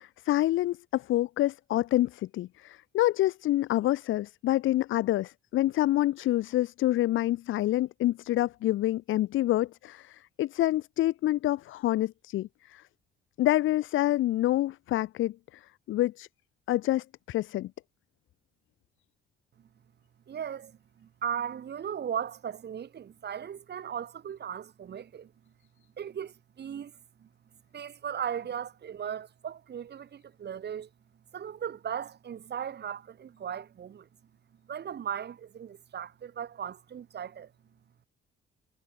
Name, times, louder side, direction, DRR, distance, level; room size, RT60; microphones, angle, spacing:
voice 1, 0.0-12.8 13.4-15.6 15.9-16.3 16.7-17.7, left 15 dB, 80° left, 1.1 m, -27 dB
voice 2, 20.3-25.3 26.0-26.9 27.2-27.3 27.7-30.9 31.3-34.1 34.7-37.5, right 8 dB, 55° right, 6.8 m, -37 dB
cardioid pair, 90°, 20 cm